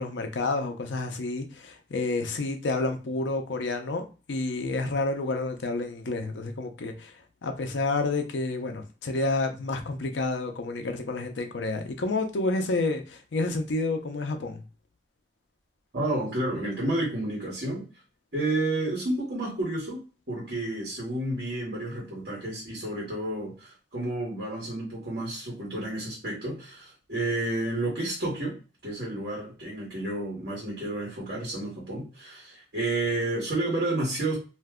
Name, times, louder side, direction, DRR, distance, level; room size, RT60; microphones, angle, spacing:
voice 1, 0.0-4.0 4.3-7.1 7.4-14.6, left 3 dB, 85° left, 0.5 m, -29 dB
voice 2, 15.9-17.8 18.3-20.0 20.3-28.6 28.8-34.4, right 2 dB, 60° right, 1.1 m, -30 dB
2.5 x 2.2 x 3.5 m
head